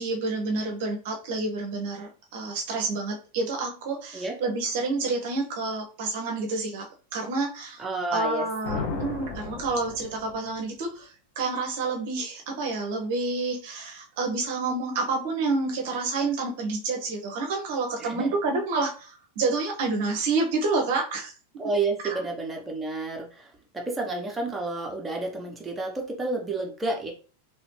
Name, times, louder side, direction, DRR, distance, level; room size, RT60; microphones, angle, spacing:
voice 1, 0.0-6.8 7.1-7.8 8.1-21.3 22.1-22.2, right 3 dB, 50° right, 1 dB, 0.8 m, -29 dB
voice 2, 7.8-8.4 8.7-9.0 18.0-18.3 21.6-27.1, right 3 dB, 10° right, 1 dB, 1.0 m, -30 dB
sound 1, 8.6-10.6, left 5 dB, 45° left, 0.9 m, -35 dB
3.1 x 3.0 x 3.2 m, 0.38 s
figure-of-eight pair, 90°, 0 cm